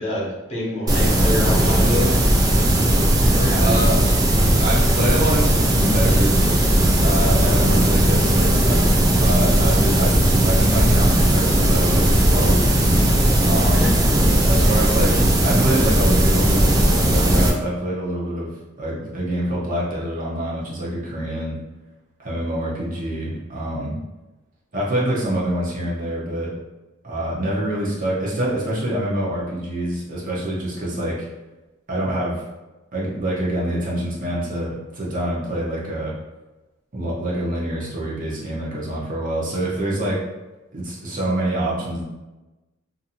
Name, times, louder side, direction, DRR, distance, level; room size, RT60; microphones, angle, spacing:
voice 1, 0.0-2.2 3.3-3.8 13.7-13.9, left 1 dB, 30° left, -6 dB, 0.8 m, -27 dB
sound 1, 0.9-17.5, right 1 dB, 20° right, 0.3 m, -17 dB
voice 2, 3.6-4.0 4.6-6.4 6.8-8.8 9.2-12.7 13.5-13.9 14.4-21.6 22.2-24.0 24.7-26.5 27.0-31.3 31.9-32.4 32.9-36.1 36.9-40.2 40.7-42.0, right 1 dB, 40° right, -6 dB, 0.7 m, -25 dB
2.6 x 2.5 x 2.7 m, 1.1 s
head